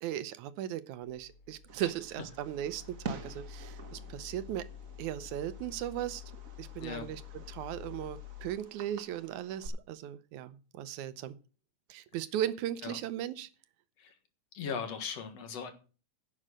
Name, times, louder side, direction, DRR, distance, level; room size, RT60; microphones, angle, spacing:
voice 1, 0.0-4.7 5.0-6.2 6.6-7.2 7.5-11.4 11.9-13.5, right 11 dB, 80° right, 15 dB, 2.2 m, -37 dB
sound 1, 1.0-8.5, left 10 dB, 85° left, 2.9 m, -49 dB
Fireworks, 1.7-9.7, right 4 dB, 45° right, 1.1 m, -48 dB
voice 2, 6.8-7.1 12.1-12.2 12.8-13.0 14.0-14.1 14.5-15.7, left 6 dB, 60° left, 8 dB, 2.6 m, -39 dB
11.0 x 7.4 x 6.4 m, 0.35 s
omnidirectional pair, 3.4 m